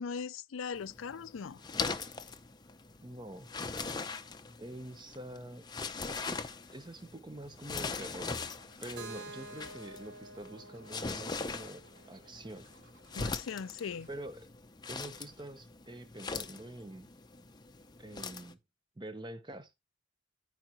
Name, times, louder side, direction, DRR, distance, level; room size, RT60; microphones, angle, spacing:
voice 1, 0.0-1.6 13.2-14.1, left 6 dB, 80° left, 0.4 m, -39 dB
sound 1, 0.7-18.5, left 4 dB, 20° left, 0.6 m, -41 dB
voice 2, 3.0-3.5 4.6-5.6 6.7-8.3 8.8-12.7 14.1-14.5 14.9-17.1 18.0-18.6 19.0-19.7, right 1 dB, 20° right, 0.8 m, -46 dB
Scratching (performance technique), 8.0-14.2, right 2 dB, 80° right, 3.6 m, -63 dB
Keyboard (musical), 9.0-12.9, right 2 dB, 55° right, 1.2 m, -50 dB
13.5 x 4.8 x 2.9 m
head